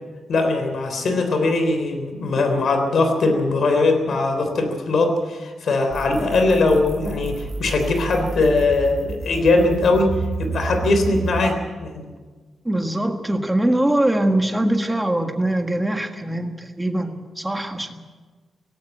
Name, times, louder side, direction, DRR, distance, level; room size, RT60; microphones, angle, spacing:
voice 1, 0.3-12.1, left 3 dB, 55° left, 5 dB, 3.6 m, -20 dB
sound 1, 5.9-11.5, right 3 dB, 45° right, 3.2 m, -30 dB
voice 2, 12.6-18.0, right 1 dB, 5° right, 5 dB, 1.5 m, -22 dB
17.5 x 17.0 x 9.0 m, 1.4 s
wide cardioid pair, 175°, 0 cm